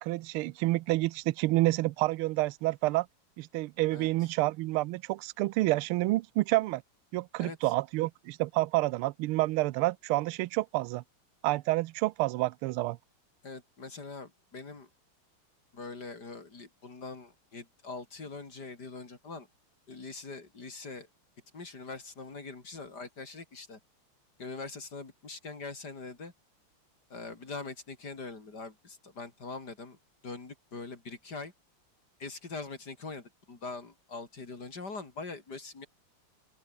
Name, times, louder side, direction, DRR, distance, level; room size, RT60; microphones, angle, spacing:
voice 1, 0.0-3.1 3.4-6.8 7.1-11.0 11.4-13.0, right 19 dB, 80° right, 1.5 m, -29 dB
voice 2, 7.4-7.7 13.4-14.9 15.7-19.5 19.9-21.1 21.5-23.8 24.4-26.3 27.1-30.0 30.2-31.5 32.2-35.9, left 3 dB, 45° left, 4.0 m, -43 dB
open air
omnidirectional pair, 2.4 m